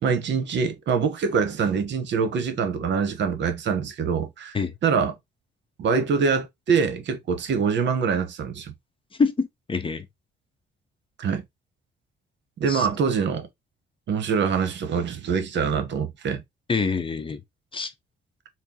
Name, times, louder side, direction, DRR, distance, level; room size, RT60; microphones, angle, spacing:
voice 1, 0.0-4.6 4.8-5.1 5.8-8.7 11.2-11.4 12.6-13.5 14.1-16.4, right 6 dB, 65° right, 0.9 m, -24 dB
voice 2, 9.2-10.1 12.7-12.9 16.7-17.4 17.7-17.9, left 4 dB, 25° left, 0.6 m, -25 dB
4.3 x 2.0 x 3.6 m
cardioid pair, 90°, 20 cm